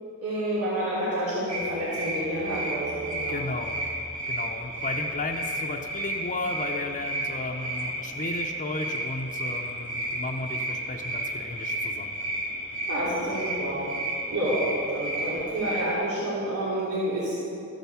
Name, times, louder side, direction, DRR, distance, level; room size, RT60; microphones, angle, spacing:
voice 1, 0.2-3.4 12.9-13.8 14.3-17.3, right 1 dB, 85° right, -9 dB, 3.3 m, -29 dB
sound 1, 1.5-15.9, right 1 dB, 50° right, 2.9 m, -32 dB
voice 2, 3.3-3.8 4.3-12.1, left 2 dB, 35° left, 1 dB, 0.7 m, -34 dB
14.0 x 9.1 x 7.0 m, 2.8 s
head